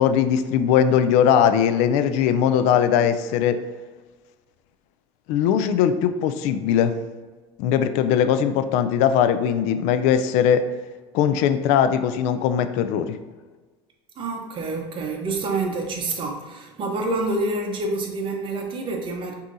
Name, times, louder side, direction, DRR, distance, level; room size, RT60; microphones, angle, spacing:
voice 1, 0.0-3.6 5.3-6.9 7.6-10.6 11.1-13.2, left 8 dB, 65° left, 10 dB, 0.4 m, -20 dB
voice 2, 14.2-19.3, right 2 dB, 40° right, 2 dB, 0.9 m, -27 dB
6.0 x 2.8 x 2.6 m, 1.3 s
supercardioid pair, 95°, 13 cm